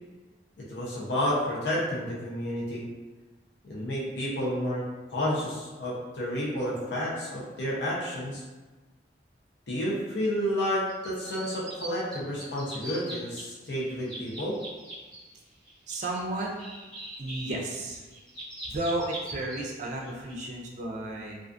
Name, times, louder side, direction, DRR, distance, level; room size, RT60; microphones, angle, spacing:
voice 1, 0.7-2.8 3.6-4.8 5.1-8.4 9.7-14.6, equal, 65° left, -6 dB, 0.6 m, -30 dB
sound 1, 10.9-11.9 12.1-13.4 13.7-15.2 15.7-19.6 20.0-20.3, right 1 dB, 5° left, 0.8 m, -41 dB
voice 2, 15.9-16.5 17.2-18.0 18.7-21.4, right 2 dB, 40° right, -1 dB, 0.4 m, -33 dB
2.4 x 2.3 x 2.4 m, 1.2 s
head